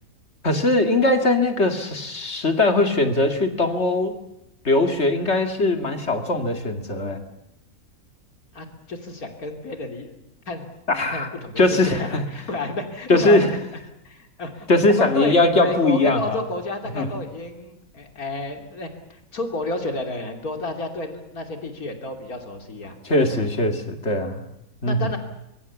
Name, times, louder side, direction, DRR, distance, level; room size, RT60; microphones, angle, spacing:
voice 1, 0.4-4.1 4.6-7.2 10.9-11.3 11.6-12.2 13.1-13.5 14.7-16.4 16.9-17.2 23.0-24.5 24.8-25.1, left 2 dB, 50° left, 6 dB, 2.4 m, -20 dB
voice 2, 8.5-10.2 10.5-10.7 11.1-13.6 14.1-23.0 23.3-23.5 24.9-25.2, left 2 dB, 85° left, 5 dB, 3.4 m, -31 dB
24.0 x 23.0 x 7.1 m, 0.87 s
omnidirectional pair, 1.5 m